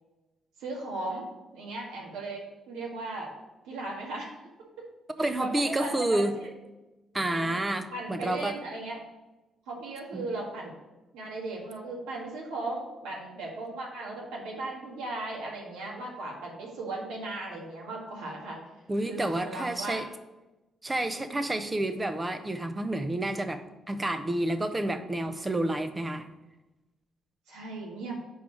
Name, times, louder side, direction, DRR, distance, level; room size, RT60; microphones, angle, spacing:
voice 1, 0.6-1.3 1.5-3.3 3.6-4.4 5.2-6.5 7.2-7.5 7.9-9.0 9.7-10.7 11.1-18.6 19.1-20.0 27.5-28.2, right 2 dB, 80° right, -2 dB, 1.7 m, -37 dB
voice 2, 5.2-6.3 7.1-8.6 10.1-10.3 18.9-20.1 20.8-26.3, right 1 dB, 25° right, 9 dB, 0.8 m, -29 dB
5.5 x 4.8 x 6.1 m, 1.1 s
hypercardioid pair, 50°, 0 cm